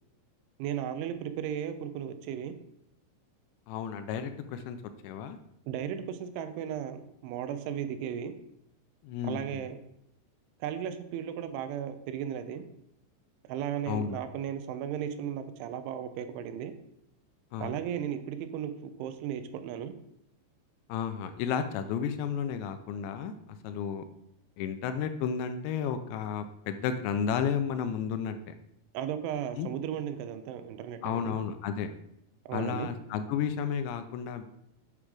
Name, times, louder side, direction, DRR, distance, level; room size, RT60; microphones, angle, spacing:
voice 1, 0.6-2.5 5.7-8.3 9.2-9.8 10.6-12.7 13.4-16.7 17.6-19.9 28.9-31.4 32.5-32.9, right 9 dB, 85° right, 9 dB, 3.2 m, -35 dB
voice 2, 3.7-4.8 5.0-5.4 9.0-9.6 13.9-14.2 17.5-17.7 20.9-23.3 23.6-24.0 24.6-28.4 29.6-29.7 31.0-31.9 32.5-34.4, left 7 dB, 85° left, 9 dB, 2.9 m, -32 dB
8.8 x 7.2 x 4.8 m, 0.78 s
omnidirectional pair, 5.3 m